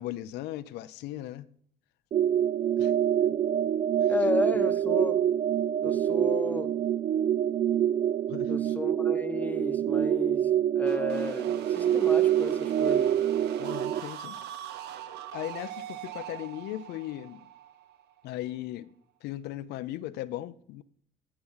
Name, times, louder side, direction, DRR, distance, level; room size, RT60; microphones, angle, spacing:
voice 1, 0.0-1.4 2.8-2.9 4.0-4.1 8.3-8.5 13.6-14.4 15.3-17.5 18.2-18.9 19.2-20.8, left 14 dB, 85° left, 0.5 m, -37 dB
sound 1, 2.1-14.0, right 10 dB, 40° right, 0.4 m, -26 dB
voice 2, 4.1-5.2 5.8-6.7 8.5-13.1, left 2 dB, 10° left, 1.0 m, -33 dB
sound 2, 10.9-18.6, right 10 dB, 80° right, 0.9 m, -42 dB
15.0 x 6.0 x 5.5 m
cardioid pair, 110°, 17 cm